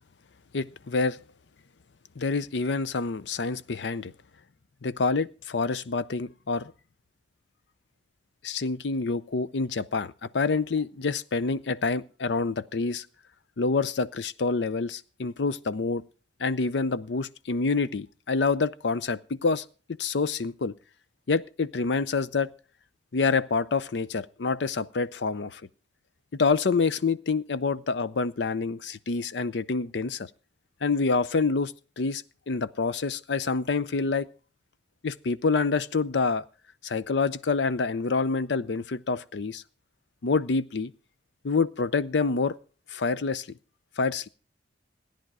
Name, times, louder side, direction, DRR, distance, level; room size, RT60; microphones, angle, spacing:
voice 1, 0.5-1.2 2.2-4.1 4.8-6.7 8.4-13.1 13.6-16.0 16.4-19.6 20.0-20.7 21.3-22.5 23.1-25.6 26.3-30.3 30.8-34.3 35.0-36.4 36.8-39.6 40.2-40.9 41.4-42.6 42.9-43.5 44.0-44.3, left 4 dB, 70° left, 0.6 m, -27 dB
16.0 x 10.5 x 4.8 m
head